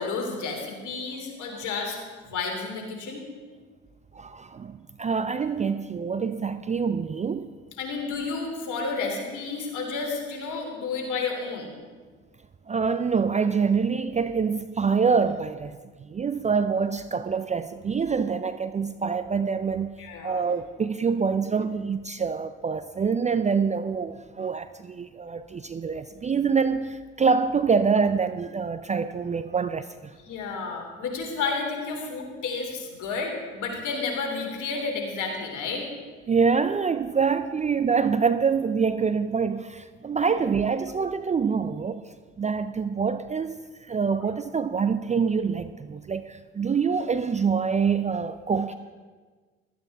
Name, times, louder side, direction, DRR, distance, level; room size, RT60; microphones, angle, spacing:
voice 1, 0.0-2.0 2.3-3.2 7.8-11.7 20.0-20.4 30.3-35.9 40.2-40.3, left 4 dB, 55° left, 3.0 m, -31 dB
voice 2, 4.1-7.5 12.7-20.0 20.2-30.2 36.3-42.0 42.4-48.8, right 5 dB, 20° right, 0.5 m, -25 dB
15.5 x 13.0 x 3.5 m
hypercardioid pair, 50°, 35 cm